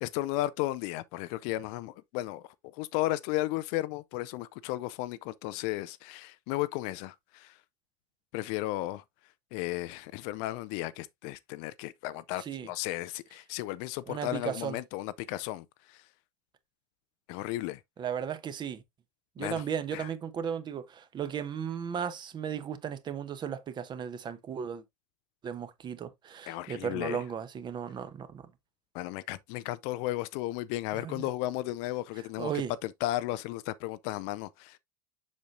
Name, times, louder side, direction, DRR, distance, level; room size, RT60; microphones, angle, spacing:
voice 1, 0.0-7.6 8.3-9.0 9.5-16.0 17.3-17.8 19.4-19.6 19.9-20.1 26.5-27.2 28.9-32.5 32.8-34.8, left 16 dB, 45° left, 0.5 m, -34 dB
voice 2, 12.4-12.7 14.1-14.8 18.0-18.8 19.4-24.8 25.4-28.4 30.9-31.3 32.4-32.7, right 8 dB, 25° right, 0.9 m, -35 dB
7.4 x 6.3 x 2.5 m
figure-of-eight pair, 85°, 17 cm